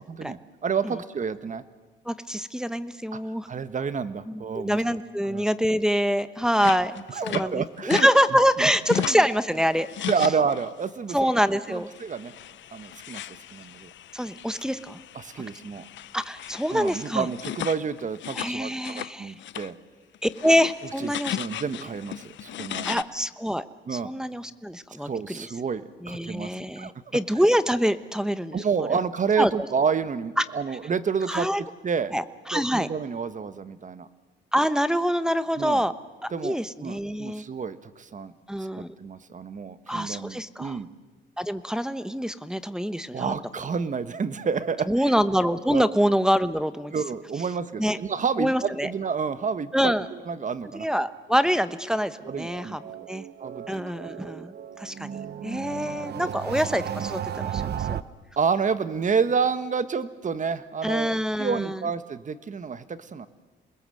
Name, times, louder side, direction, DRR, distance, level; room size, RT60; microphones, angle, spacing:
voice 1, 0.0-1.6 3.1-3.2 3.5-4.8 5.2-5.5 7.1-9.2 10.1-11.3 11.7-12.3 12.7-13.2 13.5-13.9 15.1-15.8 16.7-19.7 21.0-23.0 23.8-24.1 25.0-26.9 28.5-31.5 31.8-32.1 32.5-34.1 35.6-35.8 36.3-38.3 38.8-40.9 43.1-44.9 45.7-45.9 46.9-50.9 52.2-52.8 53.4-53.7 55.8-55.9 56.2-56.3 58.4-63.3, right 6 dB, 40° right, 12 dB, 1.3 m, -29 dB
voice 2, 2.1-3.5 4.3-10.1 11.1-11.9 14.1-15.0 16.1-17.3 18.3-19.3 20.2-21.4 22.8-23.6 23.9-25.4 26.0-29.0 29.4-29.7 30.4-30.5 31.3-31.6 32.1-32.9 34.5-35.9 36.2-37.4 38.5-38.9 39.9-40.8 41.4-43.3 44.9-46.9 47.8-48.0 48.4-48.9 49.7-50.1 50.8-52.8 53.1-53.3 53.7-58.0 60.8-61.8, equal, 5° right, 12 dB, 1.1 m, -25 dB
sound 1, 6.6-8.1 8.4-9.3 9.7-10.8 11.2-11.5 11.9-19.1 19.4-19.7 20.1-23.0, left 12 dB, 70° left, 0.7 m, -36 dB
sound 2, 51.9-58.0, right 9 dB, 55° right, 0.9 m, -35 dB
28.0 x 21.0 x 7.8 m, 1.3 s
cardioid pair, 90°, 20 cm